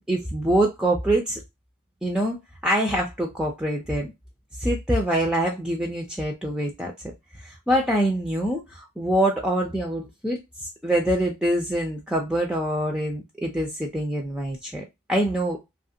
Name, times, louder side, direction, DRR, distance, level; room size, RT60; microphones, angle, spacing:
voice 1, 0.0-1.4 2.0-4.1 4.6-6.9 7.4-15.6, right 1 dB, 5° right, 0.4 m, -25 dB
2.8 x 2.4 x 2.7 m
head